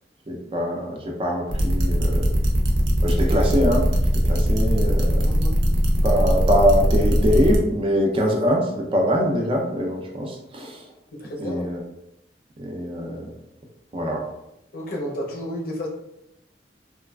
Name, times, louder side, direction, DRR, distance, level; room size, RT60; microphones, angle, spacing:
voice 1, 0.3-2.3 3.0-3.9 4.2-5.3 6.0-10.8 11.4-11.8 12.6-13.3 13.9-14.2, equal, 30° right, 0 dB, 0.4 m, -23 dB
sound 1, 1.5-7.6, equal, 80° right, 0.6 m, -20 dB
voice 2, 5.2-5.6 11.1-11.6 14.7-15.9, left 1 dB, 55° left, -1 dB, 0.6 m, -31 dB
2.9 x 2.3 x 2.3 m, 0.85 s
head